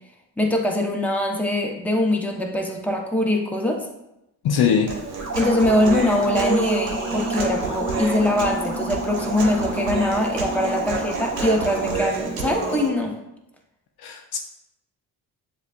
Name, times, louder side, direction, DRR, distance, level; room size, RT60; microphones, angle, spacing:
voice 1, 0.4-3.9 5.4-13.1, left 1 dB, 5° left, 1 dB, 0.9 m, -22 dB
voice 2, 4.4-4.9 14.0-14.4, left 7 dB, 55° left, 3 dB, 0.6 m, -21 dB
Human voice, 4.9-12.9, right 3 dB, 85° right, 0.9 m, -28 dB
sound 1, 5.2-12.0, right 2 dB, 30° right, 1.3 m, -33 dB
7.1 x 2.4 x 2.4 m, 0.88 s
supercardioid pair, 50°, 44 cm